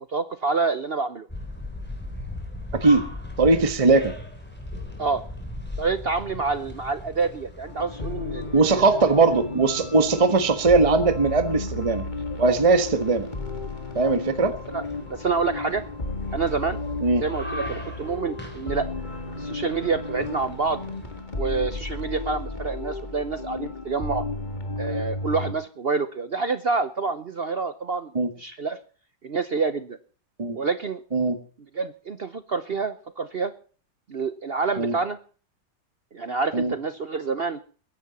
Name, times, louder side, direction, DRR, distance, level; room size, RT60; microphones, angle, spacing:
voice 1, 0.1-1.3 5.0-5.2 5.8-8.8 14.7-14.8 15.1-15.8 16.3-16.8 17.2-18.9 19.4-20.8 21.4-24.2 24.8-28.1 28.4-28.8 29.2-30.0 30.5-31.0 31.7-33.5 34.1-35.2 36.1-37.6, right 4 dB, 70° right, 12 dB, 0.5 m, -27 dB
sound 1, 1.3-21.2, left 1 dB, 5° left, 3.6 m, -40 dB
voice 2, 2.7-3.0 3.4-4.1 8.5-12.0 12.4-13.3 13.9-14.5 17.0-17.2 28.1-28.3 30.4-30.6 31.1-31.4 34.8-34.9 36.5-36.7, right 3 dB, 20° right, 9 dB, 1.3 m, -20 dB
sound 2, 7.7-25.5, left 3 dB, 25° left, 1.9 m, -34 dB
22.0 x 11.0 x 4.2 m, 0.40 s
omnidirectional pair, 2.1 m